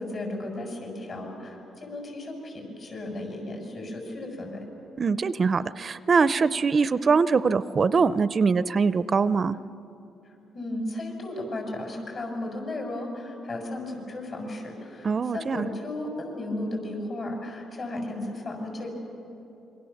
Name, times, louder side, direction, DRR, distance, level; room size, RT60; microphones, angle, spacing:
voice 1, 0.0-4.6 10.3-18.9, left 1 dB, 50° left, 2 dB, 7.2 m, -35 dB
voice 2, 5.0-9.6 15.0-15.7, right 5 dB, 40° right, 15 dB, 0.5 m, -23 dB
27.0 x 23.5 x 7.2 m, 2.8 s
cardioid pair, 90°, 0 cm